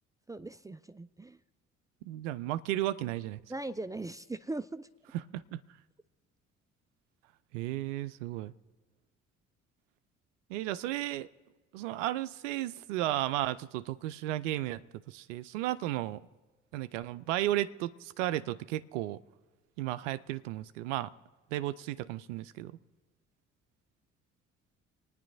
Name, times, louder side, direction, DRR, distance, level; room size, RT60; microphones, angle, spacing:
voice 1, 0.3-1.4 3.5-4.9, right 2 dB, 10° right, 13 dB, 0.4 m, -39 dB
voice 2, 2.0-3.4 5.1-5.6 7.5-8.5 10.5-11.3 11.7-16.2 16.7-19.2 19.8-21.1 21.5-22.7, right 14 dB, 75° right, 14 dB, 0.5 m, -34 dB
27.5 x 9.6 x 2.7 m, 1.2 s
figure-of-eight pair, 50°, 37 cm